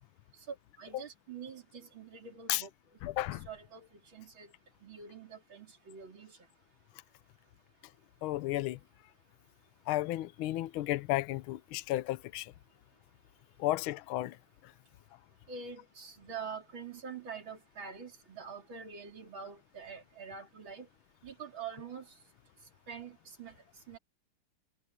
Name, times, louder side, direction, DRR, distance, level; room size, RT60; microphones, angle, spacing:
voice 1, 0.8-2.7 3.4-3.9 4.1-4.5 4.8-6.3 15.5-20.9 21.2-22.1 22.9-23.5 23.9-24.0, right 6 dB, 65° right, 4.3 m, -45 dB
voice 2, 3.0-3.5 8.2-8.8 9.9-12.5 13.6-14.3, left 16 dB, 75° left, 1.5 m, -33 dB
omnidirectional pair, 2.3 m